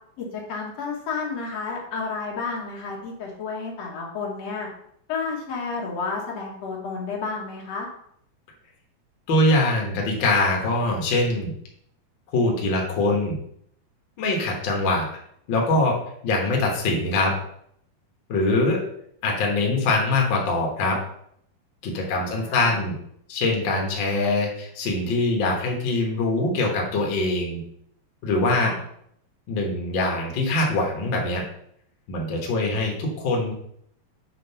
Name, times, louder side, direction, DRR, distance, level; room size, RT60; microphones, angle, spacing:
voice 1, 0.2-4.7 5.1-7.9 22.0-22.8 28.6-28.8, left 4 dB, 55° left, -2 dB, 2.1 m, -31 dB
voice 2, 9.3-11.5 12.3-13.4 14.2-15.1 15.5-16.0 16.2-17.3 18.3-18.8 19.2-21.0 21.8-23.0 23.3-27.6 28.2-28.7 29.5-31.4 32.1-33.5, left 2 dB, 75° left, -1 dB, 1.0 m, -23 dB
7.6 x 3.8 x 5.6 m, 0.70 s
omnidirectional pair, 4.3 m